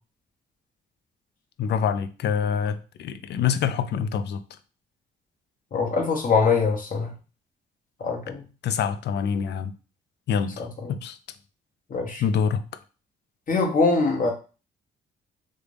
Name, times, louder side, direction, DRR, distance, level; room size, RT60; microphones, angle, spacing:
voice 1, 1.6-4.4 8.6-9.7 10.3-11.2 12.2-12.6, left 7 dB, 60° left, 0.4 m, -26 dB
voice 2, 5.7-7.1 8.0-8.4 10.6-11.0 11.9-12.2 13.5-14.3, left 4 dB, 45° left, 1.1 m, -23 dB
3.3 x 2.5 x 3.3 m
cardioid pair, 90°, 20 cm